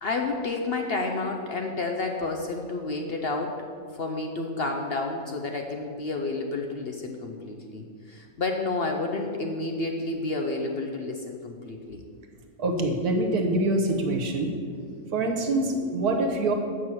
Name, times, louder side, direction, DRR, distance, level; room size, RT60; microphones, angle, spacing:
voice 1, 0.0-3.6 3.9-12.1, left 3 dB, 55° left, 3 dB, 0.8 m, -30 dB
voice 2, 12.6-14.5 15.1-16.5, right 2 dB, 80° right, 3 dB, 1.7 m, -25 dB
7.3 x 6.1 x 7.7 m, 2.2 s
omnidirectional pair, 1.6 m